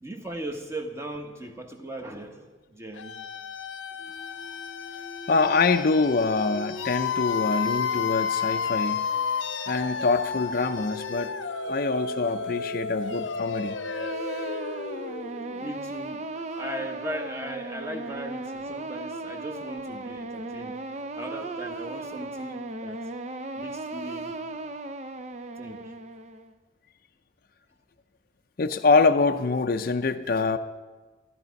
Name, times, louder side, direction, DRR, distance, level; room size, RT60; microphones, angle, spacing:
voice 1, 0.0-3.2 15.6-20.8 21.1-23.1 23.5-24.4 25.6-25.9 28.9-29.0, right 1 dB, 15° right, 1.1 m, -38 dB
sound 1, 2.9-15.8, left 5 dB, 80° left, 0.8 m, -32 dB
voice 2, 5.3-9.2 9.7-11.3 11.7-13.8 28.6-30.6, left 4 dB, 50° left, 0.5 m, -24 dB
sound 2, 13.7-26.5, right 2 dB, 35° right, 0.5 m, -36 dB
13.5 x 13.0 x 5.2 m
head